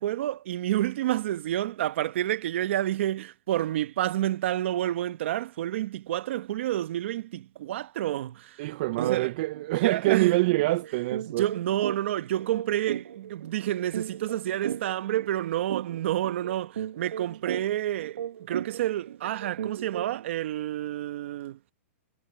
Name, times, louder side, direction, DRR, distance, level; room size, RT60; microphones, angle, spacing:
voice 1, 0.0-8.6 9.0-9.3 9.8-10.4 11.3-21.6, right 13 dB, 55° right, 0.9 m, -29 dB
voice 2, 8.6-11.5, right 20 dB, 40° right, 0.3 m, -25 dB
sound 1, 9.0-9.2 9.5-9.7 10.0-20.3, right 9 dB, 85° right, 0.9 m, -37 dB
hypercardioid pair, 155°, 7 cm